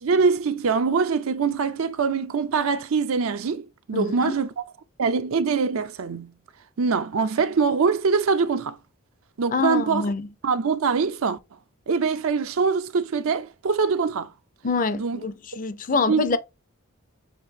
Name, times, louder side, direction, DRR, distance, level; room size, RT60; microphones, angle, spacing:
voice 1, 0.0-4.5 5.0-6.3 6.8-8.8 9.4-10.1 10.4-11.4 11.9-14.3 14.9-15.2 16.1-16.4, right 5 dB, 85° right, 0.5 m, -23 dB
voice 2, 3.9-4.4 9.5-10.3 14.6-16.4, left 4 dB, 40° left, 0.5 m, -25 dB
6.7 x 2.6 x 2.7 m
head